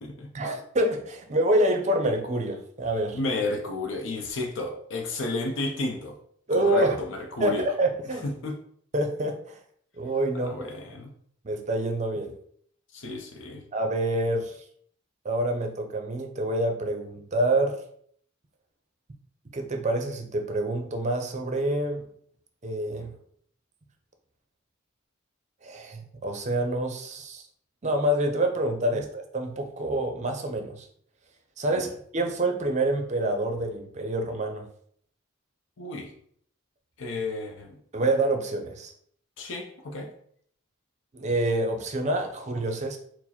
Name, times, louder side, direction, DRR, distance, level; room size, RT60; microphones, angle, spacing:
voice 1, 0.3-3.2 6.5-7.0 7.4-8.3 8.9-9.6 10.0-10.7 11.4-12.3 13.7-14.5 15.2-17.8 19.5-22.1 22.6-23.1 25.6-27.4 27.8-30.9 31.6-34.7 37.9-38.9 41.1-43.0, right 1 dB, 35° right, 5 dB, 0.5 m, -27 dB
voice 2, 3.1-6.2 6.5-7.6 8.2-8.6 10.4-11.1 12.9-13.6 28.9-29.0 31.7-31.8 35.8-36.1 37.0-37.8 39.4-40.1, left 2 dB, 65° left, 2 dB, 0.6 m, -32 dB
4.6 x 2.0 x 4.2 m, 0.63 s
head